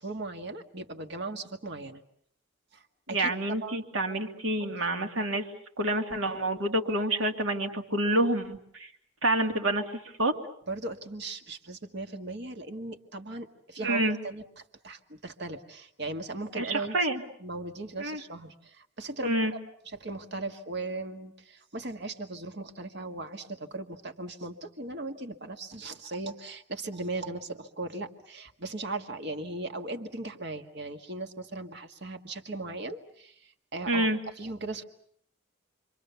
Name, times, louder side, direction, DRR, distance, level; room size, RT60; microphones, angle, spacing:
voice 1, 0.0-2.0 2.7-2.8 3.1-3.3 3.6-3.8 4.6-4.8 10.7-14.4 14.8-19.6 19.9-34.1 34.4-34.8, right 2 dB, 50° right, 6 dB, 1.8 m, -38 dB
voice 2, 3.1-5.5 5.8-8.9 9.2-9.8 10.2-10.3 13.8-14.2 16.5-17.2 18.0-18.2 19.2-19.5 33.9-34.2, right 1 dB, 70° right, 3 dB, 2.5 m, -28 dB
29.0 x 24.0 x 7.0 m, 0.66 s
head